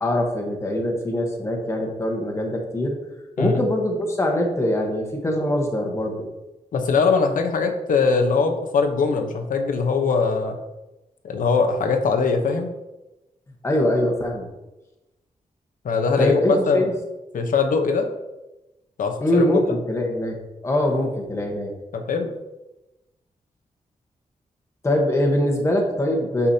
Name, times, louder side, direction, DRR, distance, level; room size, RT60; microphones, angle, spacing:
voice 1, 0.0-3.0 3.4-6.3 13.6-14.5 16.2-16.9 19.2-20.4 20.6-21.7 24.8-26.5, left 1 dB, 20° left, 1 dB, 1.2 m, -23 dB
voice 2, 6.7-10.6 11.2-12.7 15.8-16.8 17.3-18.1 19.0-19.8 21.9-22.3, left 4 dB, 90° left, 4 dB, 0.9 m, -21 dB
8.5 x 5.9 x 2.8 m, 1.0 s
wide cardioid pair, 165°, 13 cm